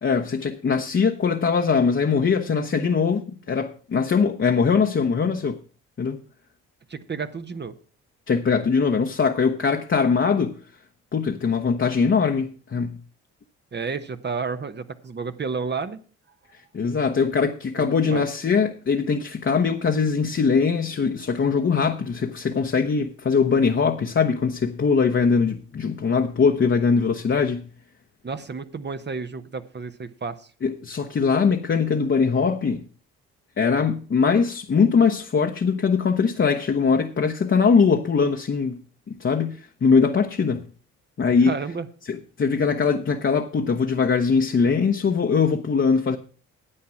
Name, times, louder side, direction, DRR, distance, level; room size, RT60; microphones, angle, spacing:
voice 1, 0.0-5.6 6.0-6.2 8.3-10.6 11.1-13.0 16.7-27.7 30.6-32.8 33.6-38.8 39.1-40.7 41.2-41.5 42.1-46.2, left 5 dB, 35° left, 1.0 m, -21 dB
voice 2, 6.9-7.7 13.7-16.0 17.8-18.2 28.2-30.5 41.4-41.9, right 5 dB, 30° right, 1.0 m, -31 dB
9.9 x 8.5 x 5.8 m
supercardioid pair, 55°, 33 cm